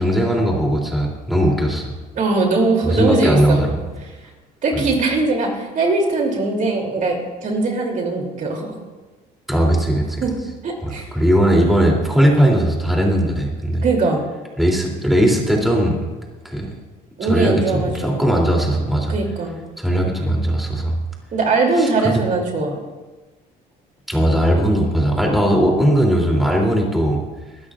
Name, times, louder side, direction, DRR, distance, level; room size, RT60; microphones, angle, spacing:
voice 1, 0.0-1.9 2.8-3.8 4.7-4.8 9.5-10.2 10.8-13.8 14.6-16.1 16.4-16.7 17.2-19.1 19.8-21.0 21.8-22.2 24.1-27.2, equal, ahead, -2 dB, 3.0 m, -18 dB
voice 2, 2.1-3.6 4.6-8.7 10.2-11.1 13.8-14.2 17.2-18.3 19.1-19.6 21.3-22.8, right 3 dB, 50° right, 1 dB, 3.0 m, -20 dB
24.0 x 12.5 x 2.5 m, 1.2 s
cardioid pair, 110°, 17 cm